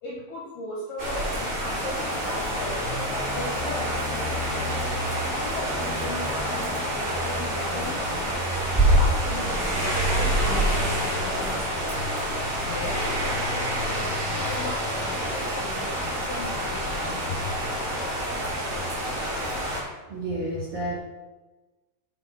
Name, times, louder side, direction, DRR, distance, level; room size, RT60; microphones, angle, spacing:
voice 1, 0.0-4.5 5.4-8.4 8.9-12.0 12.6-17.4, left 2 dB, 75° left, -4 dB, 2.0 m, -37 dB
sound 1, 1.0-19.8, right 1 dB, 20° right, 1.8 m, -27 dB
voice 2, 20.0-21.0, right 1 dB, 80° right, -7 dB, 1.4 m, -30 dB
7.8 x 4.4 x 5.7 m, 1.2 s
omnidirectional pair, 5.6 m